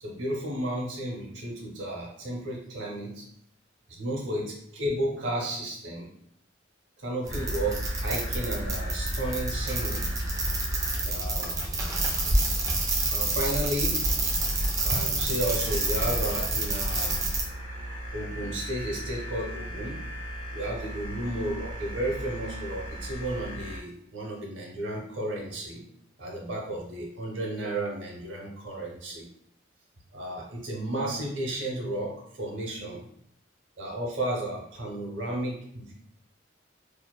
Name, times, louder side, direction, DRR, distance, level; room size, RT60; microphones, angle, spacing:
voice 1, 0.0-3.2 3.9-6.1 7.0-10.0 11.0-11.6 13.1-14.3 14.8-17.3 18.1-20.0 20.5-25.8 26.2-29.3 30.1-33.1 33.8-35.9, right 1 dB, 75° right, -1 dB, 0.7 m, -33 dB
sound 1, 7.3-23.8, right 1 dB, 65° left, 0.8 m, -38 dB
sound 2, 7.3-17.4, right 2 dB, 15° right, 0.3 m, -28 dB
2.7 x 2.1 x 2.2 m, 0.68 s
head